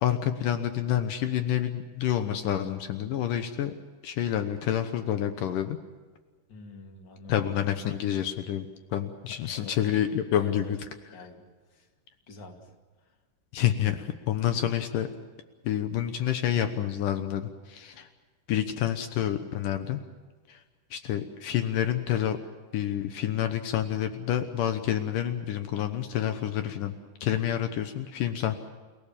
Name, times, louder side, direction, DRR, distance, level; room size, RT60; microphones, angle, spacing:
voice 1, 0.0-3.7 4.0-5.8 7.3-10.8 13.5-15.1 15.6-18.1 18.5-20.0 20.5-20.6 20.9-22.4 22.7-26.9 27.2-28.6, left 10 dB, 75° left, 8 dB, 2.6 m, -28 dB
voice 2, 6.5-7.4 9.5-9.8 10.4-10.8 11.1-11.4 11.7-11.9 12.3-12.7, left 3 dB, 35° left, 3 dB, 2.9 m, -46 dB
30.0 x 17.5 x 7.3 m, 1.4 s
omnidirectional pair, 3.8 m